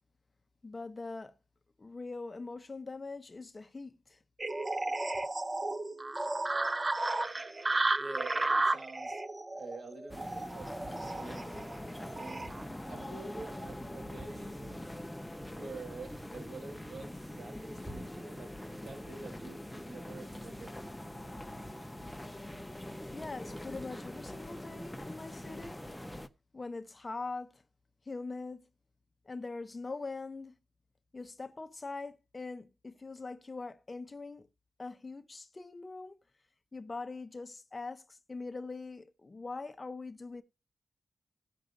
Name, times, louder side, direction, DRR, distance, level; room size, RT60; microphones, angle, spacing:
voice 1, 0.6-1.3 1.8-4.2 23.1-25.8 26.5-27.6 28.1-28.7 29.2-30.6 31.1-34.5 34.8-36.2 36.7-40.4, left 3 dB, 35° left, 0.9 m, -42 dB
sound 1, 4.4-12.6, right 2 dB, 30° right, 0.5 m, -33 dB
voice 2, 8.0-9.2 9.5-11.5 12.1-12.5 12.9-14.8 15.5-20.8, right 3 dB, 85° right, 3.4 m, -47 dB
sound 2, 10.1-26.3, left 1 dB, 5° left, 0.8 m, -43 dB
17.5 x 6.3 x 2.6 m
wide cardioid pair, 100°, 0 cm